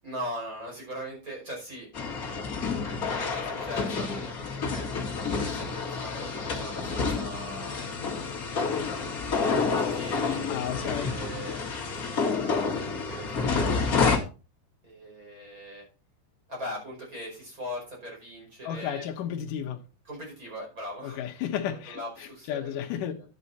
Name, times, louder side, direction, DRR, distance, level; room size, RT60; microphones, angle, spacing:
voice 1, 0.0-1.9 2.2-2.6 3.1-5.1 5.4-7.9 9.3-11.6 12.4-14.1 14.8-15.9 16.5-19.1 20.1-21.2 21.7-23.2, equal, 20° right, 5.3 m, -41 dB
sound 1, 1.9-14.2, left 4 dB, 90° left, 0.7 m, -29 dB
voice 2, 10.5-11.2 18.6-19.8 21.0-23.1, left 9 dB, 70° left, 2.0 m, -33 dB
10.0 x 8.3 x 4.2 m
omnidirectional pair, 5.2 m